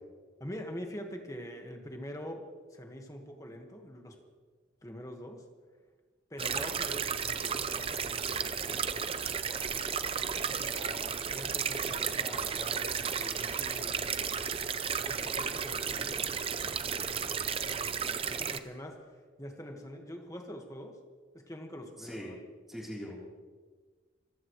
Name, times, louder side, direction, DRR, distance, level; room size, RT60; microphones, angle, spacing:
voice 1, 0.4-2.4 2.7-4.2 4.8-5.4 6.3-8.9 10.5-14.3 15.0-16.3 17.7-21.0 21.3-22.4, equal, 15° left, 3 dB, 1.6 m, -45 dB
sound 1, 6.4-18.6, right 6 dB, 30° right, 0.6 m, -33 dB
voice 2, 16.8-17.1 22.0-22.3 22.7-23.2, equal, ahead, -5 dB, 3.6 m, -42 dB
26.5 x 15.0 x 3.2 m, 1.4 s
head